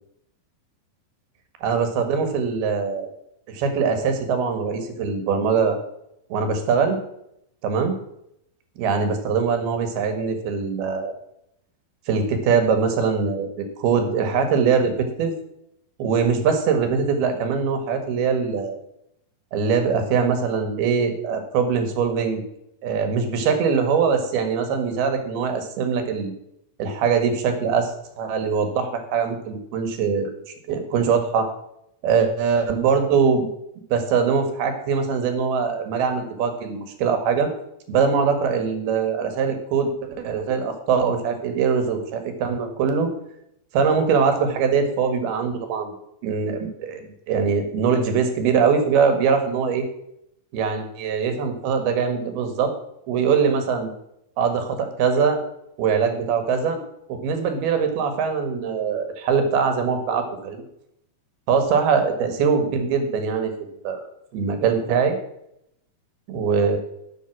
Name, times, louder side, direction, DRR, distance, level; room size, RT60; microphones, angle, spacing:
voice 1, 1.6-3.1 3.5-5.8 6.3-7.0 7.6-8.0 8.8-11.1 12.1-15.3 16.0-18.8 19.5-22.4 22.8-26.3 26.8-30.3 30.7-31.5 32.0-33.5 33.9-37.5 37.9-39.9 40.2-43.1 43.7-45.9 46.2-49.9 50.5-52.7 53.1-53.9 54.4-55.4 55.8-56.8 57.1-60.6 61.5-63.5 63.8-64.0 64.3-65.2 66.3-66.8, right 6 dB, 85° right, 7 dB, 3.6 m, -22 dB
11.0 x 7.0 x 6.1 m, 0.78 s
omnidirectional pair, 4.3 m